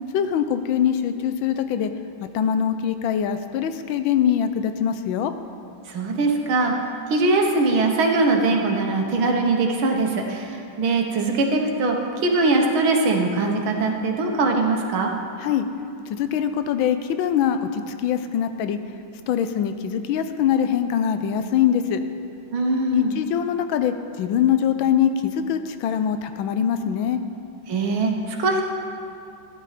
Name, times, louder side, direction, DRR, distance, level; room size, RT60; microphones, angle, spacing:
voice 1, 0.1-1.9 2.3-5.3 15.4-15.6 16.1-18.8 19.3-22.0 22.9-27.2, left 9 dB, 85° left, 9 dB, 1.4 m, -23 dB
voice 2, 5.9-6.7 7.1-12.0 12.2-15.1 22.5-23.2 27.7-28.6, right 3 dB, 85° right, 1 dB, 2.0 m, -21 dB
14.5 x 10.5 x 4.1 m, 2.5 s
omnidirectional pair, 2.2 m